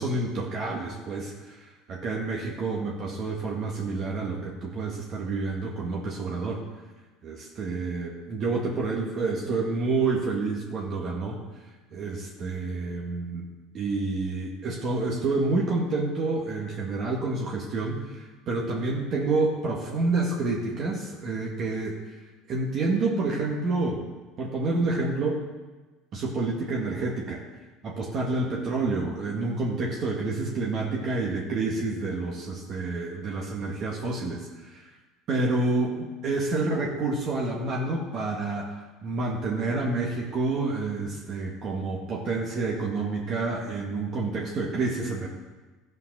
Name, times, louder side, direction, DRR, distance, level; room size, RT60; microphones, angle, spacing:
voice 1, 0.0-6.6 7.2-11.4 11.9-13.5 13.7-22.0 22.5-24.0 24.4-25.4 26.1-27.4 27.8-34.9 35.3-38.7 39.0-45.3, right 3 dB, 50° right, -3 dB, 1.9 m, -28 dB
13.5 x 5.5 x 6.1 m, 1.2 s
supercardioid pair, 95°, 0 cm